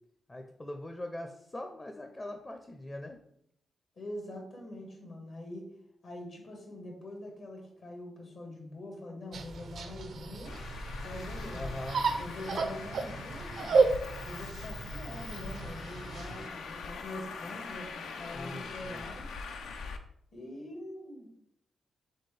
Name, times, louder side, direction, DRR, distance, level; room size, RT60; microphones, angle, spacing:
voice 1, 0.3-3.2 11.5-12.0 18.3-19.0, left 1 dB, 25° left, 4 dB, 0.5 m, -41 dB
voice 2, 4.0-5.7 6.0-10.6 11.0-11.8 12.1-13.8 14.2-19.2 20.3-21.3, left 1 dB, 70° left, 1 dB, 1.5 m, -44 dB
sound 1, 9.3-16.5, right 4 dB, 70° right, 0.4 m, -33 dB
Traffic noise roadway noise, 10.4-20.0, left 4 dB, 85° left, 0.4 m, -42 dB
4.3 x 3.7 x 3.3 m, 0.73 s
cardioid pair, 65°, 0 cm